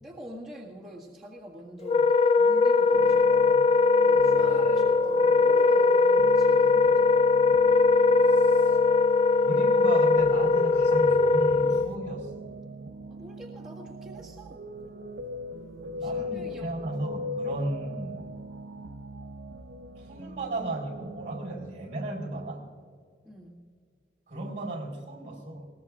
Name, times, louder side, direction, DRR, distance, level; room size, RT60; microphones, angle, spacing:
voice 1, 0.0-3.7 4.0-7.0 13.1-14.7 16.0-16.9 23.2-23.7, right 1 dB, 5° right, -9 dB, 1.7 m, -46 dB
Wind instrument woodwind instrument, 1.8-11.9, left 4 dB, 35° left, 0.3 m, -21 dB
sound 1, 2.9-21.5, right 1 dB, 90° right, 0.7 m, -39 dB
voice 2, 4.3-4.7 8.2-8.8 9.4-12.6 15.8-18.3 20.0-22.6 24.3-25.7, right 2 dB, 45° right, 1 dB, 3.8 m, -35 dB
21.0 x 18.0 x 2.4 m, 2.1 s
head